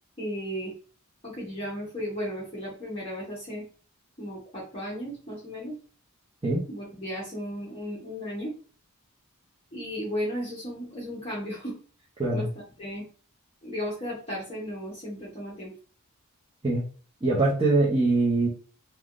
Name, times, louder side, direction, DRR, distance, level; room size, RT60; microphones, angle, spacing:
voice 1, 0.2-0.7 1.2-3.6 4.2-5.7 6.7-8.5 9.7-11.8 12.3-12.5 12.8-13.0 13.6-15.7, equal, 25° left, -6 dB, 0.9 m, -35 dB
voice 2, 17.2-18.5, right 2 dB, 25° right, -5 dB, 0.7 m, -23 dB
3.4 x 2.2 x 2.5 m, 0.39 s
head